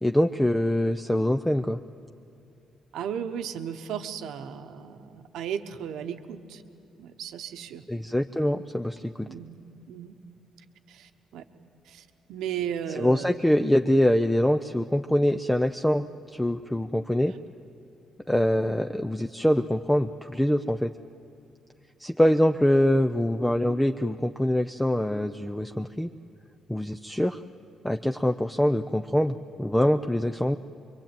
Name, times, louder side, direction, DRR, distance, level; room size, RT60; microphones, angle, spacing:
voice 1, 0.0-1.8 7.9-9.3 13.0-16.1 16.3-17.3 18.3-20.9 22.0-26.1 26.7-27.4 27.8-30.6, left 1 dB, 5° left, 7 dB, 0.5 m, -24 dB
voice 2, 2.9-6.6 7.0-7.8 9.3-9.6 9.9-10.1 10.9-11.4 11.8-13.4, right 8 dB, 85° right, 7 dB, 1.1 m, -35 dB
24.5 x 23.0 x 9.0 m, 2.6 s
cardioid pair, 90°, 0 cm